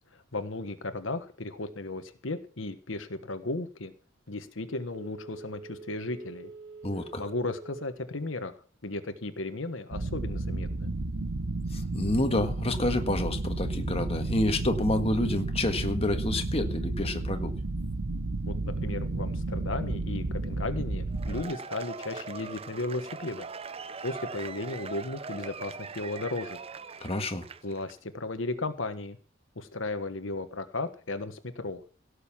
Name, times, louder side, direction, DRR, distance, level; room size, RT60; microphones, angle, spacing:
voice 1, 0.3-3.9 4.3-6.5 7.2-10.9 18.5-23.5 23.8-26.6 27.6-29.2 29.5-31.8, left 2 dB, 75° left, 9 dB, 1.4 m, -35 dB
Telephone, 4.9-8.0 8.4-8.5, right 4 dB, 65° right, 1.5 m, -46 dB
voice 2, 6.8-7.2 11.7-17.5 27.0-27.4, left 1 dB, 30° left, 6 dB, 1.6 m, -28 dB
sound 1, 9.9-21.4, right 2 dB, 85° right, 1.2 m, -32 dB
Cheering / Applause / Crowd, 21.1-27.9, right 5 dB, 30° right, 0.6 m, -41 dB
17.0 x 6.7 x 7.3 m, 0.39 s
head